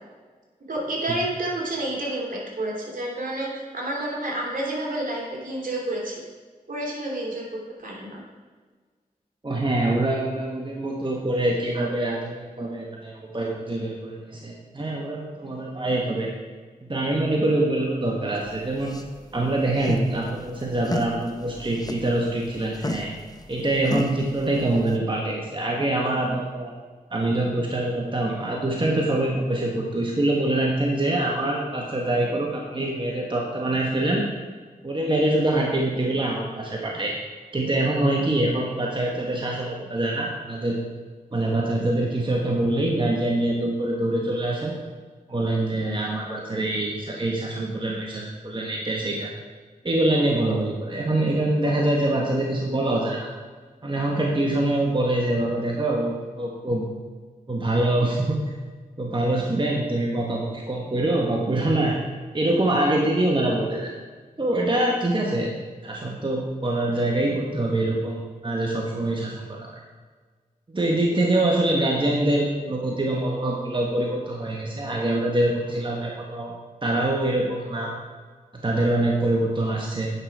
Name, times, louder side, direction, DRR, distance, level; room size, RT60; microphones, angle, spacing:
voice 1, 0.7-6.1 6.7-8.2, right 1 dB, 65° right, -2 dB, 2.8 m, -29 dB
voice 2, 9.4-16.3 16.8-18.9 19.3-23.1 23.5-26.7 27.1-34.2 34.8-37.2 37.5-40.8 41.3-44.7 45.3-49.3 49.8-53.3 53.8-56.8 57.5-58.6 59.0-62.0 62.3-63.9 64.4-65.5 65.8-69.7 70.7-76.5 76.8-77.9 78.5-80.1, right 1 dB, 30° right, -1 dB, 1.5 m, -24 dB
sound 1, 18.4-25.0, left 2 dB, 25° left, 1.0 m, -34 dB
9.9 x 5.8 x 4.7 m, 1.5 s
cardioid pair, 40°, 15 cm